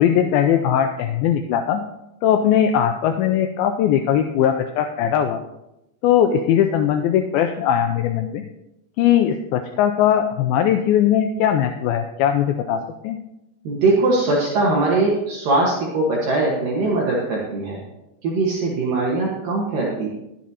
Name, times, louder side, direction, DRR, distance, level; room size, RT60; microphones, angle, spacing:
voice 1, 0.0-1.8 2.2-5.4 6.0-8.4 9.0-13.2, left 9 dB, 85° left, 6 dB, 2.2 m, -19 dB
voice 2, 13.6-17.8 18.2-20.1, right 2 dB, 65° right, -4 dB, 2.8 m, -21 dB
20.5 x 7.4 x 2.8 m, 0.90 s
omnidirectional pair, 4.7 m